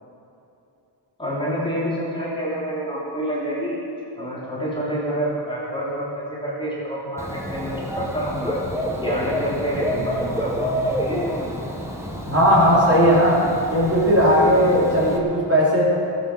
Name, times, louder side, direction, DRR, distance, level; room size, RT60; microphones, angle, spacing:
voice 1, 1.2-3.8 4.2-8.6 9.0-11.3, equal, 10° left, -9 dB, 3.4 m, -28 dB
Dog / Bird, 7.2-15.2, equal, 5° right, 1.4 m, -28 dB
voice 2, 12.2-15.8, equal, 30° right, -7 dB, 4.2 m, -17 dB
19.0 x 8.1 x 6.2 m, 2.7 s
wide cardioid pair, 145°, 45 cm